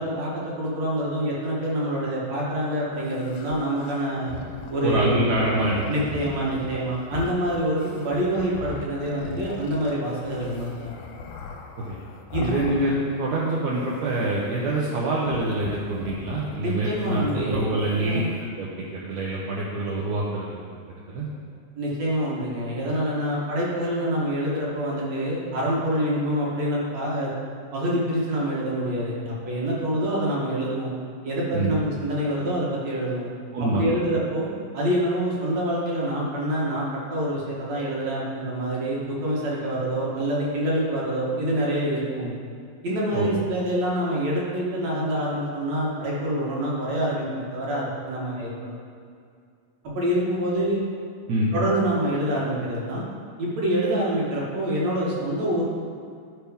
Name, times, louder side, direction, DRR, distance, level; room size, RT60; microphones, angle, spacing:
voice 1, 0.0-4.3 4.7-5.2 5.9-10.9 12.3-12.5 16.6-17.6 18.0-18.3 21.8-27.3 27.7-30.9 31.2-33.3 33.7-34.5 34.7-42.3 42.8-48.8 49.9-50.8 51.5-53.0 53.4-55.6, right 1 dB, 60° right, -5 dB, 2.0 m, -26 dB
sound 1, 3.0-13.5 13.7-14.7 15.2-18.5, left 5 dB, 90° left, 2.5 m, -39 dB
voice 2, 4.8-5.8 11.8-12.0 12.4-20.6 20.9-21.3 31.5-31.7 33.5-33.8 43.1-43.3 51.3-51.6, right 1 dB, 75° right, -5 dB, 1.6 m, -26 dB
11.5 x 4.7 x 3.5 m, 2.3 s
omnidirectional pair, 4.2 m